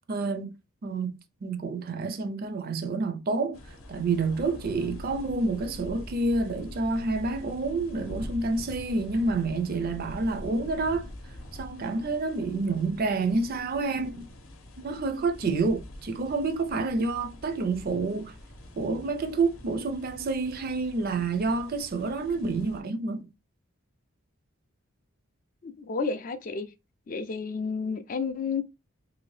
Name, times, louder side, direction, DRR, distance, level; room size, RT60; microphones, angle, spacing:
voice 1, 0.1-0.5 0.8-3.6 3.9-11.1 11.5-14.3 14.8-18.3 18.8-23.3, right 3 dB, 45° right, 0.4 m, -28 dB
sound 1, 3.5-22.8, left 1 dB, 65° left, 0.7 m, -44 dB
voice 2, 25.6-26.7 27.1-28.6, left 5 dB, 40° left, 0.3 m, -31 dB
2.8 x 2.7 x 3.1 m
head